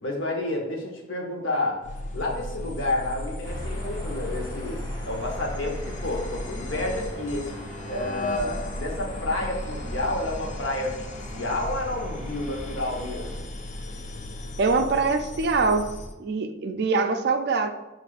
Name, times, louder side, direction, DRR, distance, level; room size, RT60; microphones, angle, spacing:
voice 1, 0.0-7.5 7.9-11.1 11.3-13.5, left 2 dB, 80° left, 1 dB, 0.9 m, -30 dB
sound 1, 1.8-16.2, left 1 dB, 35° left, 0.3 m, -36 dB
sound 2, 3.4-13.4, equal, 15° left, 0.9 m, -42 dB
voice 2, 14.6-15.9 16.2-17.7, right 4 dB, 55° right, 7 dB, 0.3 m, -23 dB
6.1 x 2.5 x 2.4 m, 1.0 s
head